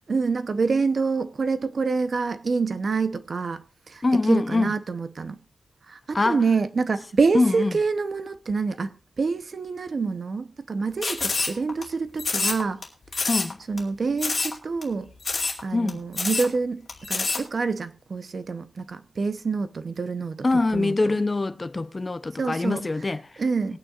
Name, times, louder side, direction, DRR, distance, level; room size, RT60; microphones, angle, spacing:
voice 1, 0.1-5.4 5.9-12.8 13.2-13.3 13.7-15.1 15.6-16.8 17.1-20.5 20.7-21.1 22.4-22.8 23.4-23.8, right 4 dB, 50° right, 0.7 m, -27 dB
voice 2, 4.0-4.7 6.1-6.4 7.3-7.7 13.3-13.6 15.7-16.0 20.4-23.2 23.7-23.8, left 3 dB, 25° left, 0.6 m, -23 dB
sound 1, 11.0-11.8 12.2-12.8 13.1-13.5 13.8-13.9 14.2-14.6 14.8-14.9 15.2-15.6 15.9-16.5 16.9-17.4, left 4 dB, 45° left, 2.5 m, -26 dB
21.5 x 9.0 x 2.4 m
wide cardioid pair, 140°, 0 cm